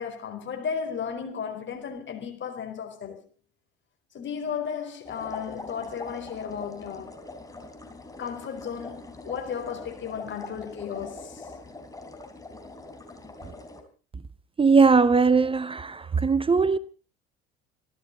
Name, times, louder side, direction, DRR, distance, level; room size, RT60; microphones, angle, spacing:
voice 1, 0.0-3.2 4.1-7.2 8.2-11.5, left 7 dB, 35° left, 4.2 m, -34 dB
sound 1, 5.0-13.8, left 2 dB, 10° left, 3.8 m, -43 dB
voice 2, 14.6-16.8, right 4 dB, 15° right, 0.7 m, -20 dB
26.5 x 12.5 x 3.9 m
figure-of-eight pair, 65°, 33 cm